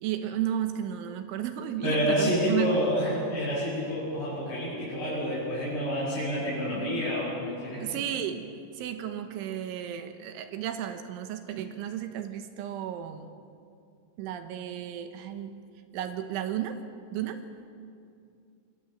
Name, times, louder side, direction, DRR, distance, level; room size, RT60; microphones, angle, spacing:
voice 1, 0.0-2.8 7.8-8.5 8.7-13.3 14.2-15.6 15.9-16.8 17.1-17.4, right 10 dB, 80° right, 8 dB, 3.4 m, -33 dB
voice 2, 1.8-8.0, equal, 25° left, -9 dB, 7.8 m, -28 dB
25.0 x 24.0 x 7.3 m, 2.4 s
omnidirectional pair, 5.7 m